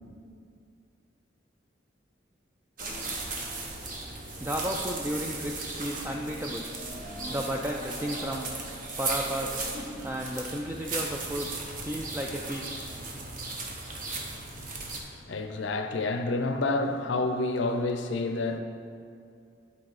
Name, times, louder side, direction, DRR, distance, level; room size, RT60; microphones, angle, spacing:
sound 1, 2.8-15.0, right 3 dB, 45° right, 0.9 m, -36 dB
voice 1, 4.4-6.7 7.3-8.5 9.0-9.6 10.0-11.5 11.8-12.8, equal, 10° right, 0 dB, 0.3 m, -33 dB
voice 2, 15.2-18.6, left 2 dB, 70° left, 6 dB, 0.6 m, -28 dB
10.5 x 4.3 x 4.1 m, 2.4 s
head